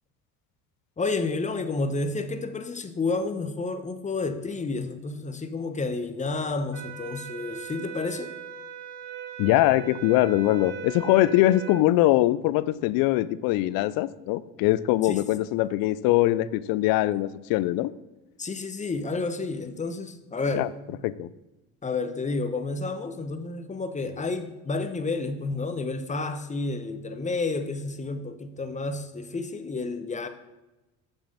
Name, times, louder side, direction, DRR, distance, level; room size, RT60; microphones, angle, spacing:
voice 1, 1.0-8.3 15.0-15.2 18.4-20.7 21.8-30.3, left 3 dB, 20° left, 9 dB, 0.9 m, -30 dB
sound 1, 6.7-11.9, right 8 dB, 45° right, 1.3 m, -39 dB
voice 2, 9.4-17.9 20.5-20.7 21.0-21.3, left 15 dB, 65° left, 17 dB, 0.5 m, -22 dB
7.1 x 5.5 x 5.5 m, 1.0 s
hypercardioid pair, 70°, 38 cm